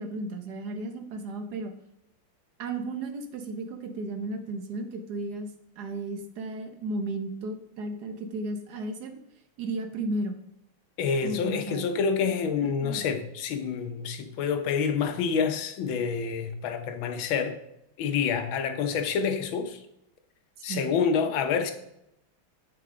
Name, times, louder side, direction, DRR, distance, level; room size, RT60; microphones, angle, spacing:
voice 1, 0.0-1.7 2.6-5.5 5.8-9.1 9.6-10.4 11.2-11.8 12.6-13.0 20.7-20.9, right 2 dB, 55° right, 1.3 m, -34 dB
voice 2, 11.0-17.6 18.0-19.8 20.6-21.7, left 6 dB, 70° left, 1.5 m, -27 dB
8.0 x 6.6 x 3.7 m
omnidirectional pair, 2.4 m